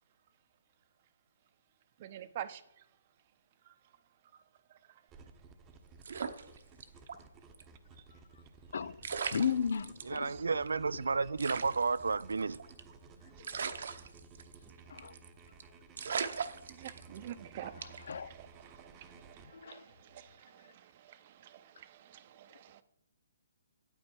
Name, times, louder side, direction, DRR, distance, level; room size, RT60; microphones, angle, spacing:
voice 1, 2.0-2.6 16.8-20.7 21.0-22.8, right 11 dB, 40° right, 0.7 m, -48 dB
sound 1, 5.1-19.5, right 4 dB, 20° right, 1.0 m, -56 dB
sound 2, 6.0-7.2 7.5-7.6 8.7-8.8 9.0-10.2 10.7-10.8 10.9-11.0 11.4-12.9 13.4-14.7 15.0-15.3 15.6-15.7 16.0-17.3 17.8-18.1, right 6 dB, 65° right, 0.9 m, -39 dB
voice 2, 9.3-10.3 14.9-15.1 17.6-18.3 19.5-19.8, left 7 dB, 70° left, 0.5 m, -35 dB
voice 3, 10.0-12.6, right 4 dB, 85° right, 0.3 m, -32 dB
9.5 x 8.8 x 4.6 m
hypercardioid pair, 150°, 0 cm